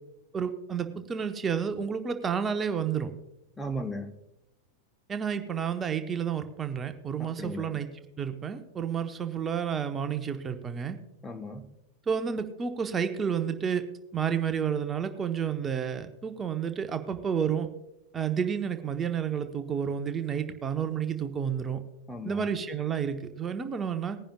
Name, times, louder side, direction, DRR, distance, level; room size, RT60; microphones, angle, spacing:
voice 1, 0.3-3.1 5.1-7.9 8.2-11.0 12.1-13.8 14.1-17.7 18.1-21.8 22.2-24.2, right 7 dB, 20° right, 8 dB, 0.9 m, -30 dB
voice 2, 3.6-4.2 7.2-7.8 11.2-11.7 22.1-22.5, equal, 10° left, 5 dB, 0.9 m, -36 dB
20.0 x 10.5 x 2.3 m, 0.90 s
figure-of-eight pair, 90°, 0 cm